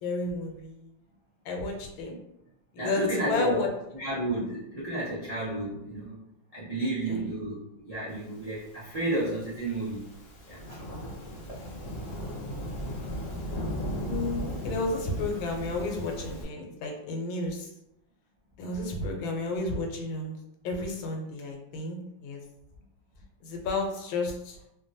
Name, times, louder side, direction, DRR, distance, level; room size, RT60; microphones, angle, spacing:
voice 1, 0.0-0.9 1.4-2.2 2.8-3.7 7.1-7.2 14.0-17.7 18.6-20.4 20.6-22.4 23.4-24.6, left 2 dB, 90° left, 2 dB, 1.4 m, -32 dB
voice 2, 2.8-3.7 3.9-6.2 6.5-10.0 10.5-10.8 11.5-11.7, right 1 dB, 45° right, -9 dB, 0.4 m, -32 dB
Thunderstorm / Rain, 8.7-16.4, equal, 65° left, 0.8 m, -37 dB
3.2 x 2.2 x 2.6 m, 0.82 s
omnidirectional pair, 2.1 m